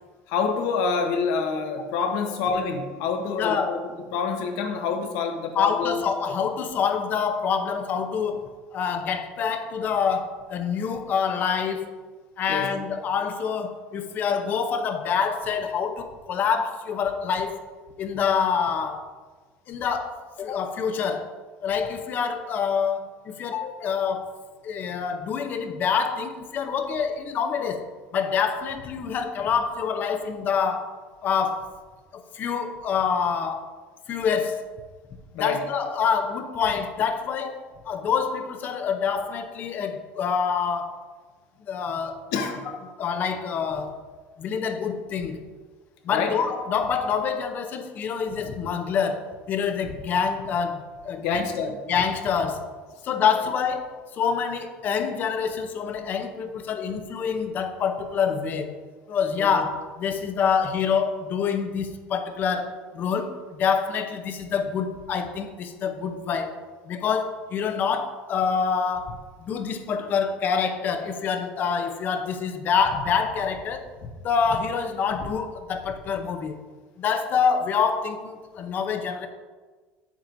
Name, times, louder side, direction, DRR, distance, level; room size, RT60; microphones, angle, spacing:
voice 1, 0.3-3.8 4.1-6.0 12.5-12.7 35.3-35.6 42.3-42.7 46.1-46.3 51.2-51.8 59.4-59.5, left 5 dB, 70° left, 1.2 m, -27 dB
voice 2, 3.4-3.8 5.5-11.9 12.4-17.6 18.0-19.1 19.7-21.3 21.6-24.4 24.6-27.9 28.1-30.9 31.2-31.7 32.1-33.7 34.1-34.7 35.3-41.0 41.7-42.2 43.0-44.0 44.4-45.4 46.0-51.5 51.9-52.7 53.0-58.7 59.1-66.6 66.8-76.6 77.0-79.3, left 6 dB, 40° left, 0.7 m, -26 dB
8.9 x 7.3 x 2.6 m
cardioid pair, 140°, 5 cm